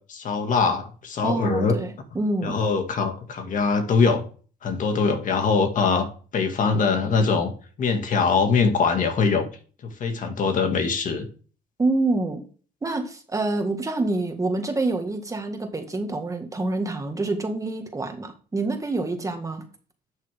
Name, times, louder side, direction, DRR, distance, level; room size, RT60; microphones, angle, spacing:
voice 1, 0.1-1.8 2.4-4.2 4.6-6.1 6.3-7.5 7.8-9.5 9.8-11.3, left 5 dB, 50° left, 5 dB, 2.0 m, -22 dB
voice 2, 1.2-2.5 11.8-12.4 12.8-19.6, right 2 dB, 20° right, 5 dB, 1.8 m, -27 dB
11.5 x 6.7 x 3.5 m, 0.39 s
cardioid pair, 110°, 17 cm